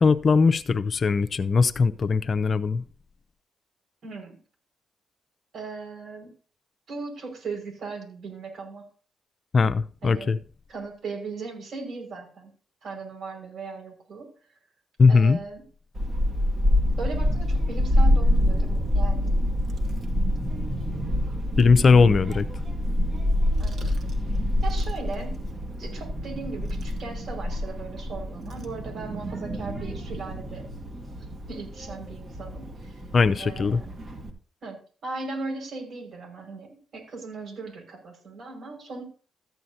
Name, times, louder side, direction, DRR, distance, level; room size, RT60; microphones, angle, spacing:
voice 1, 0.0-2.8 9.5-10.4 15.0-15.4 21.6-22.5 33.1-33.8, left 4 dB, 45° left, 0.6 m, -19 dB
voice 2, 4.0-4.4 5.5-6.3 6.9-8.8 10.0-10.3 10.7-12.5 12.8-14.3 15.1-15.6 17.0-19.3 23.6-23.9 24.6-25.4 25.8-30.6 31.5-33.0 33.4-33.9 34.6-39.0, right 4 dB, 65° right, 5.5 m, -37 dB
Child speech kid speaking / Wind, 15.9-34.3, left 1 dB, 45° right, 2.2 m, -26 dB
14.0 x 9.2 x 2.8 m
cardioid pair, 75°, 0 cm